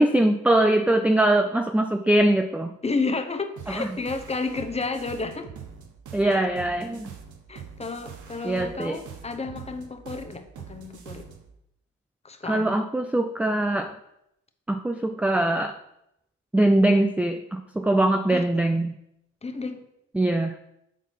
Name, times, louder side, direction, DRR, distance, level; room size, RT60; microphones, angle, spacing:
voice 1, 0.0-2.7 3.8-4.0 6.1-7.1 8.4-9.0 12.5-13.9 14.7-15.8 16.5-18.9 20.1-20.5, right 1 dB, 5° right, 7 dB, 0.4 m, -22 dB
voice 2, 2.8-5.5 6.2-6.4 7.5-11.3 12.2-12.7 18.3-18.4 19.4-19.8, left 3 dB, 20° left, 7 dB, 0.9 m, -31 dB
sound 1, 3.6-11.5, right 7 dB, 75° right, 1.2 m, -43 dB
7.3 x 4.1 x 5.6 m, 0.81 s
cardioid pair, 90°, 30 cm